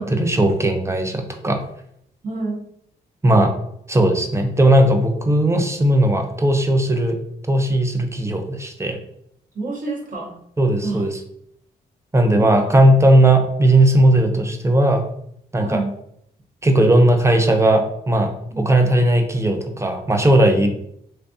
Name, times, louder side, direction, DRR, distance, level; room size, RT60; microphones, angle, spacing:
voice 1, 0.0-1.6 3.2-3.5 3.9-7.2 7.5-9.0 10.6-11.1 12.1-15.1 15.5-15.8 16.6-20.7, right 1 dB, 15° right, 5 dB, 0.6 m, -17 dB
voice 2, 2.2-2.6 9.5-10.3 10.8-11.0 12.4-12.7 15.6-15.9 18.5-19.0, right 3 dB, 40° right, -4 dB, 1.5 m, -28 dB
3.2 x 2.6 x 2.6 m, 0.71 s
supercardioid pair, 45°, 21 cm